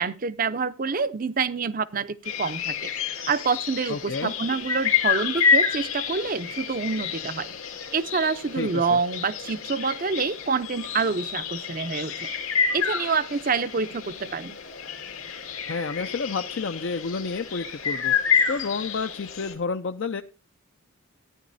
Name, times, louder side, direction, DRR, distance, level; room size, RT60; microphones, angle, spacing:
voice 1, 0.0-2.9 3.3-7.6 7.9-12.3 12.7-14.6, right 5 dB, 40° right, 14 dB, 0.6 m, -27 dB
sound 1, 2.2-19.5, left 6 dB, 80° left, 2.0 m, -29 dB
voice 2, 3.9-4.3 8.6-9.0 15.7-20.2, left 4 dB, 60° left, 7 dB, 0.5 m, -30 dB
14.5 x 10.0 x 2.7 m, 0.33 s
head